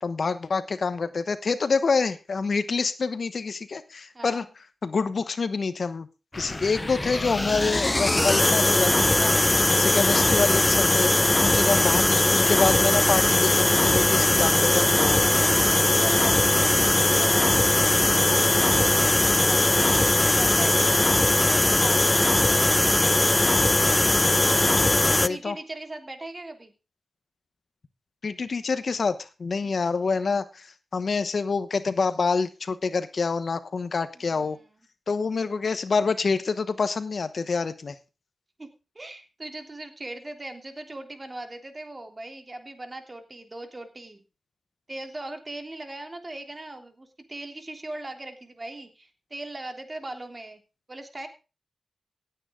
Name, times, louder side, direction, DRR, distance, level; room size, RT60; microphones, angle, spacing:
voice 1, 0.0-4.4 4.8-6.1 6.3-11.1 11.4-15.2 25.2-25.5 28.2-34.6 35.1-38.0, left 4 dB, 60° left, 13 dB, 1.1 m, -27 dB
voice 2, 4.1-4.5 11.5-12.0 15.2-23.8 24.4-26.7 29.6-29.8 34.1-34.6 38.6-38.7 38.9-44.2 44.9-50.6 50.9-51.3, right 2 dB, 30° right, 5 dB, 3.2 m, -39 dB
sound 1, 6.3-25.3, left 1 dB, 20° left, 0.6 m, -20 dB
sound 2, 19.8-22.6, right 4 dB, 75° right, 3.0 m, -46 dB
17.0 x 9.0 x 3.8 m, 0.31 s
cardioid pair, 50°, 0 cm